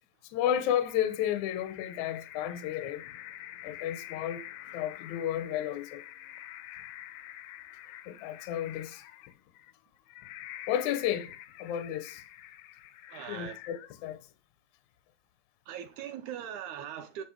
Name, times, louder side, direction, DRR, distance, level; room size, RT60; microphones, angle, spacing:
voice 1, 0.2-3.1 3.6-4.4 4.7-6.0 8.1-9.0 10.7-11.3 11.6-12.2 13.3-14.2, left 10 dB, 70° left, 2.0 m, -32 dB
sound 1, 0.8-14.3, left 13 dB, 90° left, 2.4 m, -47 dB
voice 2, 13.1-13.6 15.7-17.2, right 9 dB, 75° right, 1.9 m, -40 dB
9.1 x 5.8 x 4.5 m
omnidirectional pair, 4.0 m